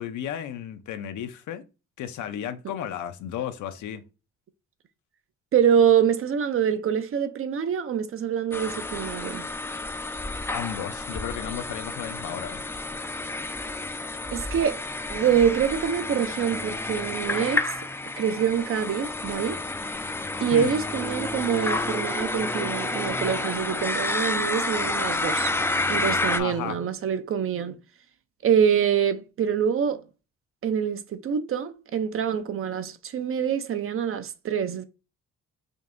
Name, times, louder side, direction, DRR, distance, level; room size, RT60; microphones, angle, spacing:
voice 1, 0.0-1.6 2.0-4.0 10.5-12.6 20.5-20.7 26.4-26.8, left 10 dB, 75° left, 0.7 m, -33 dB
voice 2, 5.5-9.5 14.3-14.8 15.1-17.7 18.2-19.6 20.4-25.5 25.9-27.8 28.4-30.0 30.6-34.8, right 8 dB, 45° right, 0.5 m, -25 dB
sound 1, 8.5-26.4, left 2 dB, 10° left, 0.3 m, -30 dB
5.2 x 2.8 x 2.5 m
cardioid pair, 90°, 30 cm